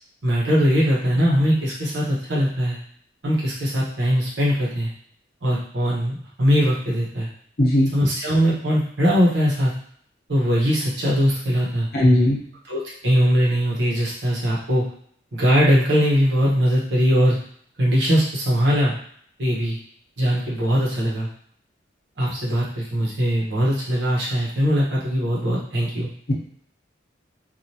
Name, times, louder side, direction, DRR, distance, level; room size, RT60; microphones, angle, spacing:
voice 1, 0.2-2.8 3.2-4.9 5.4-7.3 7.9-9.7 10.3-11.9 12.7-14.9 15.3-17.4 17.8-19.0 19.4-19.8 20.2-21.3 22.2-26.1, equal, 70° right, -5 dB, 1.0 m, -21 dB
voice 2, 7.6-7.9 11.9-12.4, left 1 dB, 55° left, -4 dB, 0.8 m, -17 dB
3.2 x 2.5 x 2.7 m, 0.62 s
head